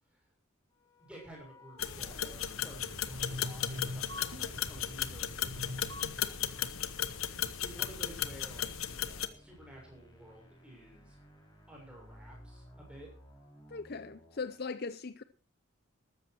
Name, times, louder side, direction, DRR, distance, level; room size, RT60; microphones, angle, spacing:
sound 1, 0.7-14.6, equal, 20° left, 5.5 m, -57 dB
voice 1, 1.0-6.7 7.1-11.2 11.7-13.1, right 1 dB, 5° right, 6.9 m, -53 dB
sound 2, 1.8-9.3, left 10 dB, 90° left, 1.1 m, -36 dB
sound 3, 3.1-6.5, left 1 dB, 85° right, 5.4 m, -43 dB
voice 2, 13.7-15.2, left 4 dB, 50° left, 0.7 m, -39 dB
14.0 x 13.5 x 4.7 m
head